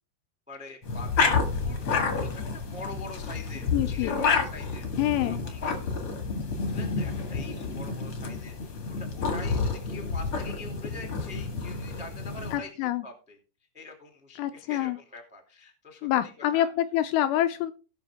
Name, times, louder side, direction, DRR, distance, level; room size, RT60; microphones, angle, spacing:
voice 1, 0.5-1.1 1.6-5.9 6.6-13.4 13.7-16.1 16.5-16.7, left 3 dB, 10° right, 3 dB, 0.3 m, -44 dB
sound 1, 0.8-12.6, left 4 dB, 55° left, 1.6 m, -29 dB
voice 2, 3.7-4.2 5.0-5.4 12.5-13.0 14.4-15.0 16.0-17.7, left 13 dB, 80° left, 10 dB, 2.5 m, -26 dB
17.5 x 6.0 x 3.5 m, 0.35 s
omnidirectional pair, 5.3 m